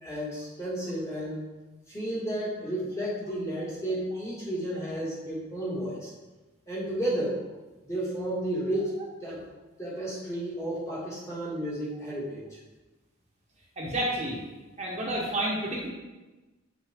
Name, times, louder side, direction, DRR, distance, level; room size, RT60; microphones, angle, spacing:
voice 1, 0.0-1.5 1.9-6.1 6.7-7.4 7.8-8.9 9.2-9.4 9.8-12.6, right 1 dB, 15° left, -6 dB, 2.1 m, -32 dB
voice 2, 13.8-14.4 14.8-15.9, right 1 dB, 35° right, -4 dB, 1.3 m, -30 dB
8.7 x 5.9 x 3.7 m, 1.2 s
head